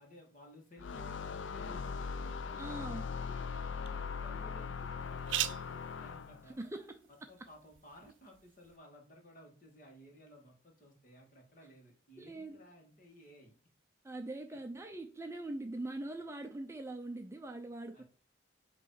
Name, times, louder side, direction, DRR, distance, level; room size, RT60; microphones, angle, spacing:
voice 1, 0.0-6.6 7.1-13.5 14.5-14.6 17.9-18.0, equal, 45° left, 1 dB, 1.9 m, -57 dB
sound 1, 0.8-6.5, left 5 dB, 80° left, 0.4 m, -40 dB
sound 2, 1.3-8.8, right 13 dB, 85° right, 0.5 m, -45 dB
voice 2, 2.6-3.1 6.6-6.9 12.2-12.6 14.0-18.0, right 2 dB, 15° right, 5 dB, 0.5 m, -42 dB
8.0 x 3.2 x 5.6 m, 0.41 s
head